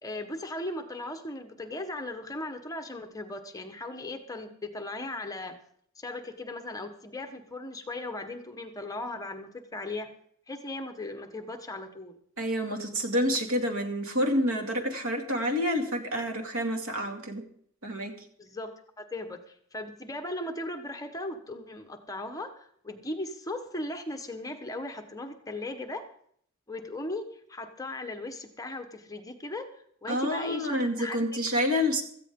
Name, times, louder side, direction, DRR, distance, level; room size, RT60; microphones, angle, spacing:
voice 1, 0.0-5.6 6.0-10.1 10.5-12.2 18.4-18.7 19.0-26.1 26.7-31.2, left 2 dB, 15° left, 6 dB, 1.2 m, -37 dB
voice 2, 12.4-17.4 17.8-18.2 30.1-32.0, equal, 80° right, 4 dB, 2.4 m, -28 dB
16.5 x 14.5 x 3.7 m, 0.64 s
head